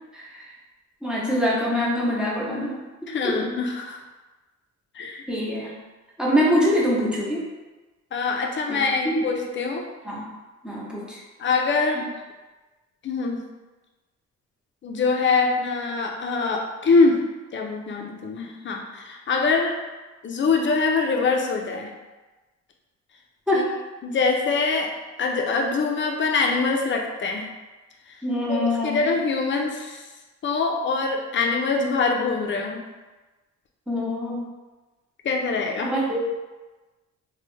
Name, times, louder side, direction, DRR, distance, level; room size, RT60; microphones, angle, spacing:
voice 1, 0.1-0.5 1.0-2.8 3.2-3.5 5.3-5.7 6.2-7.5 8.7-8.8 9.0-9.2 10.0-10.2 10.6-11.2 23.5-23.7 28.2-29.1 33.9-34.4 35.8-36.2, equal, 5° right, -6 dB, 0.8 m, -24 dB
voice 2, 3.1-4.0 4.9-5.2 8.1-9.9 11.4-12.1 13.0-13.4 14.8-17.2 17.5-19.8 20.2-21.9 23.5-23.6 24.0-24.9 25.2-27.5 28.5-30.0 30.4-32.8 35.2-35.9, left 4 dB, 40° left, 2 dB, 0.5 m, -24 dB
3.0 x 2.2 x 3.1 m, 1.2 s
cardioid pair, 90°, 30 cm